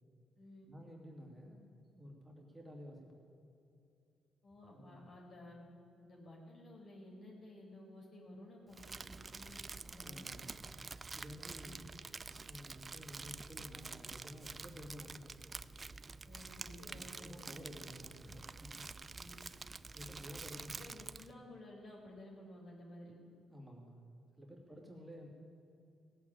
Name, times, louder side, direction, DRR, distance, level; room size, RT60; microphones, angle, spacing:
voice 1, 0.7-1.6 1.9-3.2 4.7-5.1 10.0-10.6 11.1-11.8 12.0-12.1 12.4-15.4 16.8-18.9 19.4-21.0 23.5-25.3, equal, 5° right, -2 dB, 2.5 m, -52 dB
voice 2, 4.4-5.6 6.0-10.3 11.4-11.8 16.2-17.3 19.1-19.4 20.8-23.1 24.7-24.8, left 1 dB, 55° left, -2 dB, 4.9 m, -54 dB
Crumpling crinkling, 8.7-21.3, right 4 dB, 30° right, 0.4 m, -48 dB
17.5 x 8.2 x 8.9 m, 2.5 s
cardioid pair, 90°, 0 cm